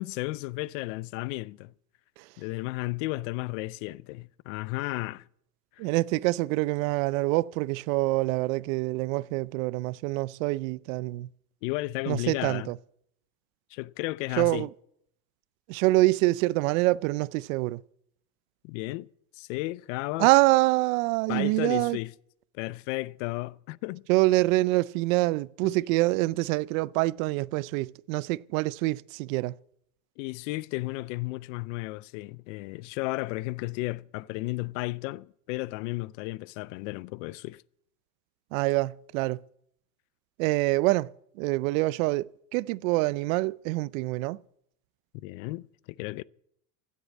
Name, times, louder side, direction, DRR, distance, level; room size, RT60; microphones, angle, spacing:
voice 1, 0.0-1.7 2.4-5.3 5.8-5.9 11.6-12.7 13.7-14.7 18.6-19.1 19.3-20.3 21.3-22.1 22.5-24.0 25.6-25.8 30.2-37.6 45.2-46.2, left 21 dB, 55° left, 0.5 m, -33 dB
voice 2, 5.8-11.3 12.1-12.8 14.4-14.7 15.7-17.8 20.2-22.0 24.1-29.5 38.5-39.4 40.4-44.4, right 20 dB, 60° right, 0.5 m, -26 dB
16.0 x 8.4 x 8.5 m
supercardioid pair, 145°, 47 cm